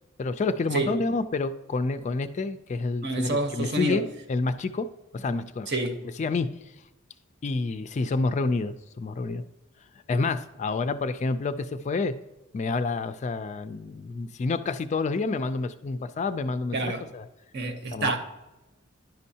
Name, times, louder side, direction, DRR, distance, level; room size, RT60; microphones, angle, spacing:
voice 1, 0.2-4.0 4.3-4.9 5.1-5.7 6.2-6.5 7.4-9.4 10.1-12.1 12.5-17.2 17.9-18.2, left 3 dB, 35° left, 0.3 m, -28 dB
voice 2, 3.0-4.0 5.7-6.0 16.7-17.1 17.5-18.2, right 2 dB, 55° right, 0.9 m, -28 dB
10.5 x 5.3 x 2.8 m
head